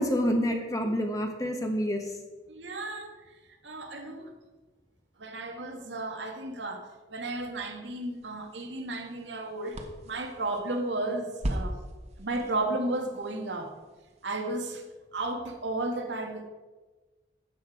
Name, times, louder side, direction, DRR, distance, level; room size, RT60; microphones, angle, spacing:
voice 1, 0.0-2.1, equal, 20° left, 3 dB, 1.2 m, -28 dB
voice 2, 2.5-3.1 3.6-4.3 5.2-11.8 12.2-13.7 14.2-14.8 15.1-16.4, right 2 dB, 80° right, 4 dB, 1.8 m, -33 dB
sound 1, 7.9-14.5, equal, 40° right, 1.3 m, -40 dB
13.0 x 8.1 x 5.0 m, 1.2 s
head